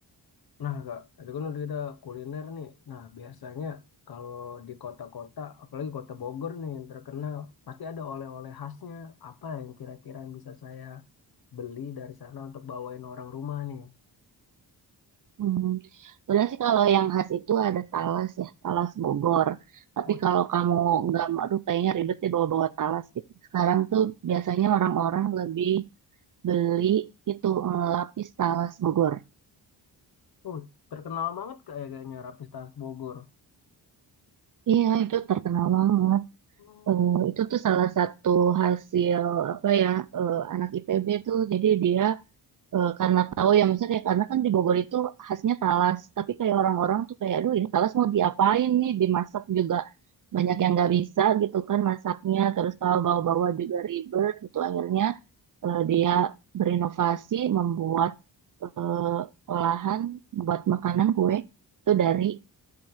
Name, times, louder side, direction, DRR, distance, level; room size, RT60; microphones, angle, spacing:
voice 1, 0.6-11.0 11.5-13.9 20.0-20.2 30.4-33.3 36.6-37.1, left 7 dB, 60° left, 0.9 m, -38 dB
voice 2, 15.4-19.6 20.0-23.0 23.5-25.8 26.4-29.2 34.7-36.2 36.9-42.2 42.7-49.9 50.3-55.2 55.6-58.1 58.6-61.4 61.9-62.4, right 9 dB, 50° right, 0.6 m, -25 dB
8.9 x 3.9 x 7.0 m
cardioid pair, 105°, 42 cm